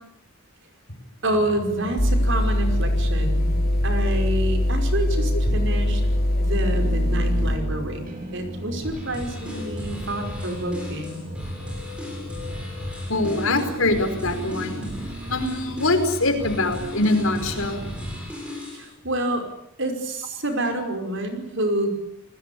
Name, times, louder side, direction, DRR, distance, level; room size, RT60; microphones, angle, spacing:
sound 1, 1.2-18.2, equal, 40° right, 5.1 m, -37 dB
voice 1, 1.2-3.5 3.8-6.0 6.4-11.2 18.7-19.4 19.8-21.9, right 1 dB, 55° right, 6 dB, 5.3 m, -28 dB
sound 2, 2.0-7.6, left 1 dB, 45° left, 5.4 m, -22 dB
sound 3, 8.8-18.9, left 1 dB, 5° right, 7.5 m, -37 dB
voice 2, 13.1-14.9 15.3-17.8, left 2 dB, 70° left, 7 dB, 5.1 m, -23 dB
29.0 x 20.0 x 8.6 m, 0.74 s
head